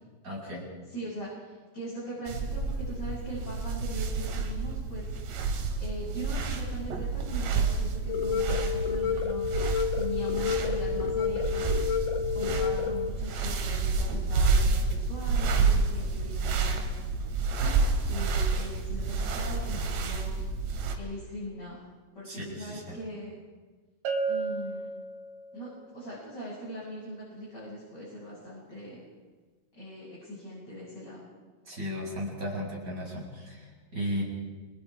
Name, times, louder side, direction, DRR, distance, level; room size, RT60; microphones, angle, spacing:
voice 1, 0.2-0.7 22.2-23.0 31.6-34.2, equal, 20° right, -3 dB, 7.7 m, -35 dB
voice 2, 0.9-5.0 5.8-9.5 9.9-11.7 12.3-16.8 17.5-17.7 18.1-20.4 21.0-21.9 22.1-23.4 24.3-24.9 25.5-29.0 29.8-31.3, equal, 25° left, -8 dB, 8.4 m, -40 dB
sound 1, 2.3-20.9, right 4 dB, 85° right, 4.4 m, -29 dB
sound 2, 8.1-13.1, left 7 dB, 60° left, 2.8 m, -30 dB
Bell, 24.1-25.7, right 4 dB, 55° right, 3.7 m, -32 dB
29.5 x 24.5 x 5.0 m, 1.3 s
omnidirectional pair, 4.8 m